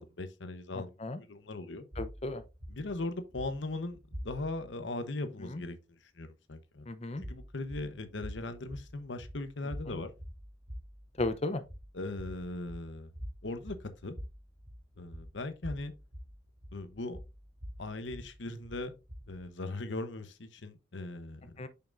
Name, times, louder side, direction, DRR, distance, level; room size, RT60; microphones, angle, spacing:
voice 1, 0.0-1.9 2.7-5.8 6.0-6.9 7.2-10.1 11.9-13.1 13.4-14.2 15.0-15.9 16.7-17.2 17.8-18.9 19.3-21.6, left 2 dB, 80° left, 0.9 m, -39 dB
sound 1, 1.9-4.7 7.1-19.5, equal, 75° right, 2.1 m, -46 dB
voice 2, 2.0-2.4 5.4-5.6 6.9-7.2 9.9-10.0 11.2-11.6 21.6-21.7, left 2 dB, 35° left, 0.7 m, -34 dB
7.1 x 5.8 x 2.5 m
head